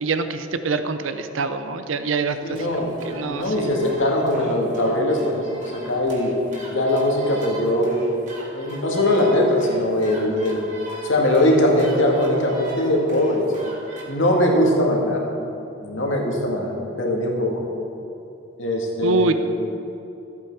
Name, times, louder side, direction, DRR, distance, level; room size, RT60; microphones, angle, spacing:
voice 1, 0.0-3.7 19.0-19.3, right 3 dB, 80° right, 9 dB, 0.6 m, -25 dB
voice 2, 2.4-6.3 6.7-8.0 8.5-10.6 11.0-13.5 14.1-15.3 15.8-17.7 18.6-19.3, left 1 dB, 75° left, -1 dB, 2.0 m, -21 dB
sound 1, 2.5-14.0, right 1 dB, 40° right, 2.1 m, -40 dB
14.0 x 8.2 x 4.8 m, 2.8 s
head